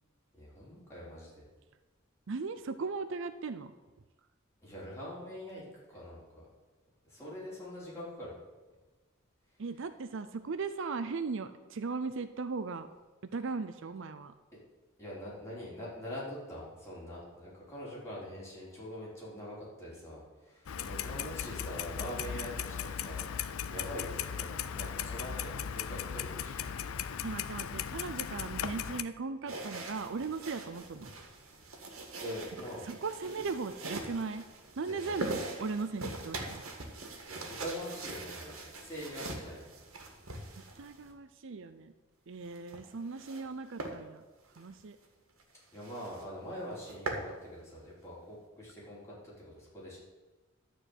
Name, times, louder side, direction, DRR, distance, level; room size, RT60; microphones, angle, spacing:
voice 1, 0.3-1.4 4.6-6.5 7.0-8.4 15.0-23.3 23.7-26.7 32.2-33.0 34.9-35.2 37.3-39.7 45.7-50.0, equal, 15° left, -7 dB, 3.8 m, -44 dB
voice 2, 2.3-3.7 9.6-12.9 13.3-14.3 27.2-31.1 32.8-34.5 34.8-36.6 40.7-41.9 42.3-44.2 44.6-45.0, right 4 dB, 65° right, 11 dB, 0.5 m, -38 dB
Clock, 20.7-29.0, left 8 dB, 85° left, 0.5 m, -37 dB
sound 1, 29.5-41.1 42.4-43.5 43.8-44.0 44.4-44.6 45.0-45.1 45.4-45.5 45.8-46.3 46.6-47.3, right 2 dB, 80° right, 1.8 m, -42 dB
12.5 x 4.6 x 8.0 m, 1.2 s
head